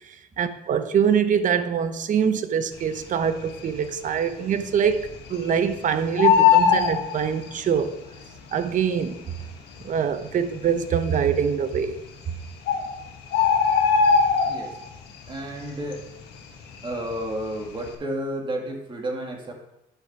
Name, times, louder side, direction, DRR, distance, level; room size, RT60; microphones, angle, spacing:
voice 1, 0.1-7.9 8.5-9.3 9.8-12.0, right 7 dB, 50° right, 0.8 m, -24 dB
Bird, 3.3-3.8 4.2-4.3 4.5-5.7 6.0-7.8 8.7-8.8 9.4-9.5 9.7-9.8 10.5-10.9 11.9-12.0 12.3-12.4 12.7-14.9 15.3-15.6 15.9-17.3 17.6-17.9, left 6 dB, 80° left, 1.3 m, -20 dB
voice 2, 15.3-16.0 16.8-19.5, right 1 dB, 30° right, 2.0 m, -31 dB
10.5 x 5.1 x 4.7 m
cardioid pair, 110°, 17 cm